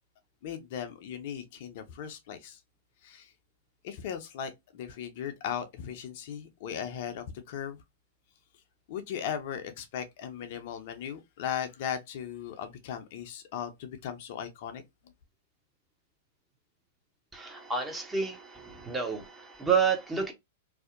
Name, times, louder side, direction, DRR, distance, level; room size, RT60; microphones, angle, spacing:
voice 1, 0.4-2.6 3.0-3.3 3.8-7.8 8.9-14.8, left 8 dB, 55° left, 0.5 m, -37 dB
voice 2, 17.3-20.3, right 6 dB, 10° right, 0.7 m, -29 dB
2.6 x 2.0 x 2.5 m
figure-of-eight pair, 105°, 0 cm